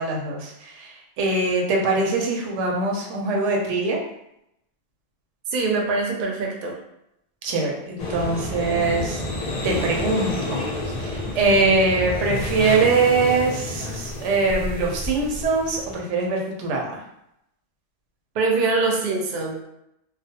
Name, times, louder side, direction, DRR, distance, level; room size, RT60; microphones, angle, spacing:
voice 1, 0.0-4.0 7.4-9.2 9.6-10.6 11.0-16.9, right 3 dB, 85° right, 0 dB, 0.9 m, -23 dB
voice 2, 5.5-6.8 18.3-19.7, right 3 dB, 60° right, 0 dB, 0.6 m, -23 dB
sound 1, 8.0-16.0, left 1 dB, 55° left, 0.4 m, -30 dB
2.3 x 2.0 x 2.7 m, 0.81 s
omnidirectional pair, 1.2 m